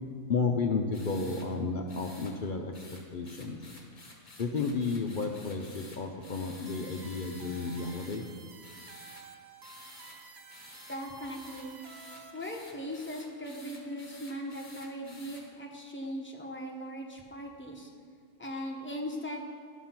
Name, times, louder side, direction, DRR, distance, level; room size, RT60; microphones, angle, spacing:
voice 1, 0.3-2.7 3.1-3.6 4.4-8.2, left 4 dB, 55° left, 3 dB, 0.6 m, -32 dB
sound 1, 0.9-1.5 1.9-2.3 2.7-8.2 8.6-9.2 9.6-10.2 10.5-15.4, left 2 dB, 30° left, 1.2 m, -52 dB
sound 2, 6.7-12.6, right 5 dB, 55° right, 0.5 m, -51 dB
voice 2, 10.9-11.8 12.3-17.9 18.4-19.4, equal, 10° left, -1 dB, 1.0 m, -39 dB
11.0 x 6.1 x 5.8 m, 2.1 s
omnidirectional pair, 1.4 m